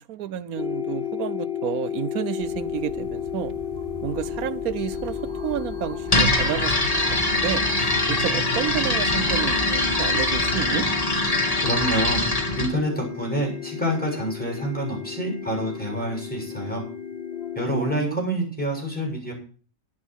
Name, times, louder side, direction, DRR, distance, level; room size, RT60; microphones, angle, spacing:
voice 1, 0.0-3.5 4.0-5.2 5.4-6.9 7.3-7.7 8.1-10.9 17.7-18.5, right 10 dB, 75° right, 1.2 m, -30 dB
sound 1, 0.6-18.0, left 9 dB, 45° left, 1.1 m, -33 dB
sound 2, 2.4-10.8, right 2 dB, 35° right, 1.9 m, -39 dB
sound 3, 6.1-12.7, left 2 dB, 25° left, 2.8 m, -23 dB
voice 2, 11.6-12.2 12.6-16.8 17.6-19.3, equal, 5° left, 7.1 m, -27 dB
12.0 x 10.5 x 6.2 m
omnidirectional pair, 1.6 m